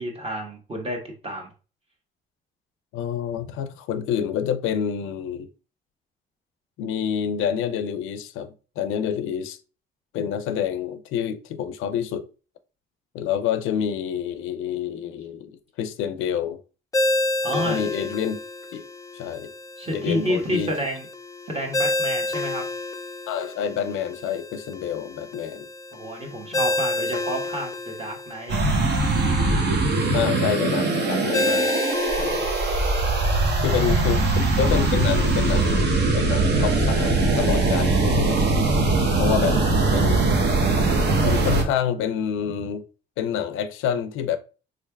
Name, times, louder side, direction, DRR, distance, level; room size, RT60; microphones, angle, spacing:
voice 1, 0.0-1.5 17.4-17.8 19.8-21.1 21.5-22.6 25.9-28.6 33.8-33.9 39.5-39.7, equal, 30° right, 1.2 m, -30 dB
voice 2, 2.9-5.5 6.8-9.6 10.1-12.3 13.1-15.5 15.8-16.6 17.5-18.4 18.7-18.9 19.1-19.5 19.9-20.7 23.3-25.7 30.1-31.9 32.2-32.5 33.6-34.3 34.6-38.5 39.2-40.3 41.2-42.9 43.2-44.4, left 8 dB, 90° left, 0.4 m, -27 dB
Ringtone, 16.9-36.1, left 2 dB, 15° left, 0.3 m, -30 dB
sound 1, 28.5-41.6, right 2 dB, 60° right, 0.8 m, -21 dB
3.7 x 3.2 x 2.2 m
cardioid pair, 90°, 20 cm